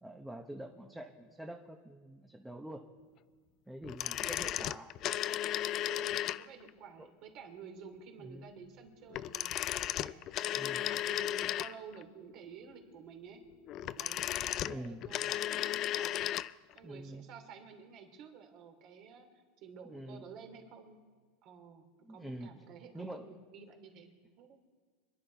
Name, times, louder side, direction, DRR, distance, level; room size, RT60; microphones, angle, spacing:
voice 1, 0.0-2.8 3.7-4.9 8.2-8.5 10.5-10.9 14.7-15.1 16.8-17.3 19.8-20.2 22.0-22.5 22.9-23.3, right 1 dB, 5° right, 2 dB, 1.0 m, -45 dB
sound 1, 3.8-6.7 9.1-12.0 13.7-16.5 16.8-16.9, left 13 dB, 45° left, 0.4 m, -35 dB
voice 2, 4.0-4.6 5.8-10.7 11.0-13.4 13.8-16.3 16.7-19.3 19.6-21.0 21.4-21.8 22.1-24.1 24.4-24.6, right 6 dB, 50° right, 4 dB, 2.9 m, -52 dB
26.0 x 10.5 x 4.6 m, 1.5 s
supercardioid pair, 115°, 0 cm